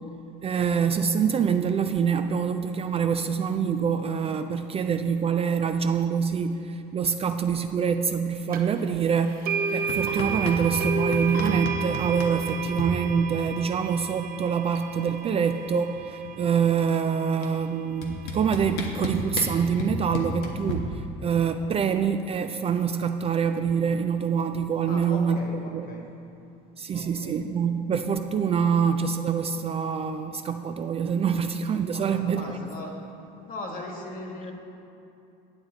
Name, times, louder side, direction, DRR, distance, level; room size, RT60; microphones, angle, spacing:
voice 1, 0.4-25.4 25.7-25.9 26.8-32.7, right 6 dB, 30° right, 8 dB, 0.3 m, -25 dB
sound 1, 8.5-8.6 9.5-17.5, right 6 dB, 45° right, 0.9 m, -32 dB
sound 2, 9.9-10.9 11.1-12.9 14.2-14.3 14.5-14.9 15.2-16.6 17.4-17.5 18.0-20.7, left 3 dB, 80° left, 1.2 m, -33 dB
voice 2, 24.8-26.1 26.9-27.4 31.9-33.0 33.4-34.5, left 1 dB, 45° left, 1 dB, 1.7 m, -39 dB
9.7 x 8.0 x 3.9 m, 2.7 s
supercardioid pair, 105°, 20 cm